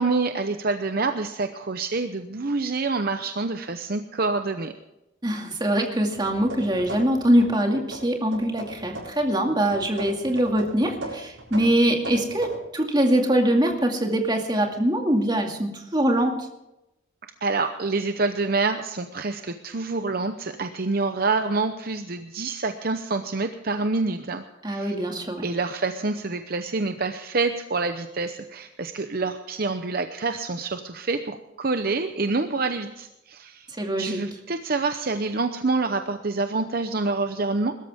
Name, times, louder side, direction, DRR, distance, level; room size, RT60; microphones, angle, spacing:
voice 1, 0.0-4.7 17.4-25.0 25.4-33.7 34.0-37.8, right 3 dB, 50° right, 8 dB, 0.8 m, -27 dB
voice 2, 5.2-16.4 24.6-25.4 33.8-34.2, right 1 dB, 20° right, 2 dB, 2.3 m, -23 dB
sound 1, 6.1-7.6 7.9-9.3 9.7-12.6, right 1 dB, 80° right, 6.7 m, -38 dB
21.5 x 13.0 x 3.6 m, 0.91 s
head